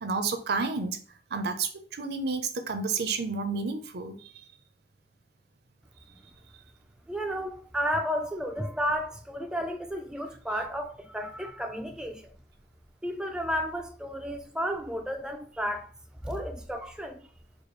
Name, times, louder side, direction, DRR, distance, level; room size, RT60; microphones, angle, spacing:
voice 1, 0.0-1.0 1.3-4.1, right 4 dB, 65° right, 0.6 m, -30 dB
voice 2, 7.1-12.3 13.0-15.9 16.2-17.2, equal, 5° right, 0.3 m, -32 dB
4.5 x 2.3 x 3.1 m
head